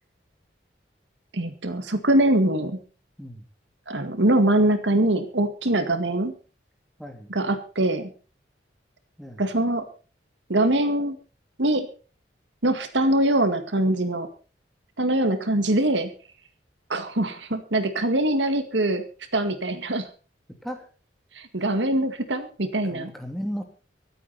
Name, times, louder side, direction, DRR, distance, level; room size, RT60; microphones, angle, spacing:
voice 1, 1.3-2.8 3.9-6.3 7.3-8.1 9.4-9.9 10.5-11.2 11.6-11.9 12.6-14.3 15.0-16.1 16.9-19.0 19.3-20.1 21.4-23.1, right 1 dB, 75° right, 8 dB, 2.0 m, -23 dB
voice 2, 7.0-7.3 9.2-9.4 20.6-20.9 22.8-23.6, equal, ahead, 4 dB, 2.8 m, -35 dB
24.5 x 8.7 x 4.2 m, 0.37 s
head